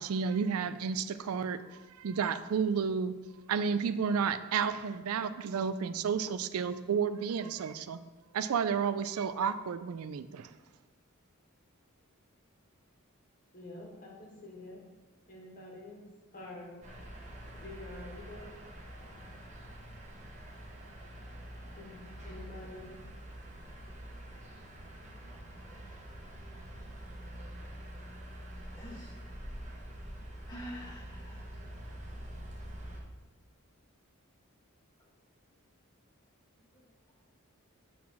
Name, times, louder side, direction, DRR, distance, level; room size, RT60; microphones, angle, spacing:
voice 1, 0.0-3.1 3.5-8.0 8.3-10.5, right 6 dB, 85° right, 13 dB, 0.4 m, -31 dB
voice 2, 13.5-14.8 15.3-16.0 16.3-16.8 17.5-18.5 19.2-19.3 21.8-23.0, left 2 dB, 40° left, -3 dB, 2.1 m, -47 dB
sound 1, 16.8-33.0, right 1 dB, 35° right, 1.2 m, -46 dB
voice 3, 28.8-29.1 30.5-31.5 36.7-36.9, equal, 20° left, -6 dB, 2.1 m, -46 dB
7.5 x 4.2 x 5.7 m, 1.2 s
head